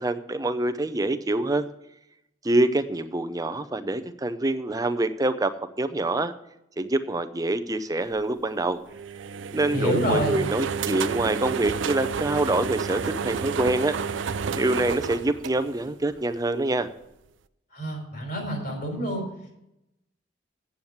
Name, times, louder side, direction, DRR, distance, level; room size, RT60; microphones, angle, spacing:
voice 1, 0.0-1.7 2.4-6.3 6.8-8.8 9.5-16.9, right 2 dB, 20° right, 10 dB, 0.6 m, -26 dB
sound 1, 8.9-16.2, right 6 dB, 85° right, 0.5 m, -30 dB
voice 2, 9.6-10.4 17.7-19.2, equal, 50° left, 1 dB, 3.9 m, -28 dB
8.9 x 7.2 x 7.9 m, 0.85 s
head